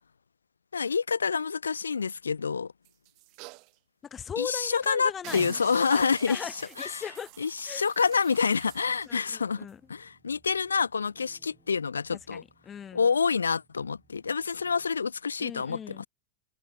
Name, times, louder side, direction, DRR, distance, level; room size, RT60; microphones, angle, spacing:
voice 1, 0.7-2.7 4.4-6.5 6.8-7.0 7.4-12.4 12.9-16.1, left 5 dB, 75° left, 0.4 m, -27 dB
sound 1, 2.8-3.7 4.2-4.3 4.6-4.9 5.2-9.1 9.7-9.8, right 27 dB, 40° right, 0.6 m, -47 dB
voice 2, 4.0-5.4 5.9-6.0 6.3-7.3 7.6-7.9 9.1-9.8 12.3-13.1 15.4-16.1, left 8 dB, 25° left, 1.5 m, -38 dB
sound 2, 8.0-15.0, right 4 dB, 15° right, 5.6 m, -66 dB
figure-of-eight pair, 90°, 0 cm